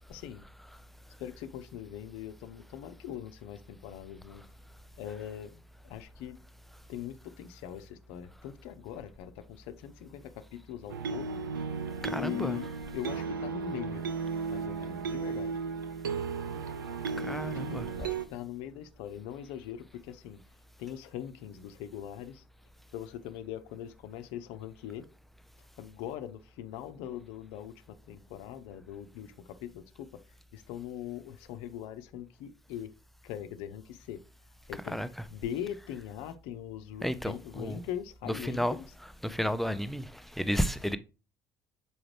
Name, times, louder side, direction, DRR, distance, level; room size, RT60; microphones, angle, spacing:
voice 1, 0.1-0.4 1.2-4.4 5.0-6.5 6.9-11.4 12.0-14.1 14.5-15.6 17.2-17.3 17.7-20.4 20.8-22.4 22.9-25.0 25.6-30.2 30.5-32.9 33.2-34.2 34.7-35.0 35.3-38.8, left 10 dB, 60° left, 0.6 m, -41 dB
sound 1, 10.9-18.2, right 5 dB, 80° right, 0.4 m, -35 dB
voice 2, 12.0-12.6 17.2-17.9 34.7-35.3 37.0-37.8 38.2-41.0, equal, ahead, 0.5 m, -32 dB
7.0 x 4.9 x 3.1 m
figure-of-eight pair, 55°, 11 cm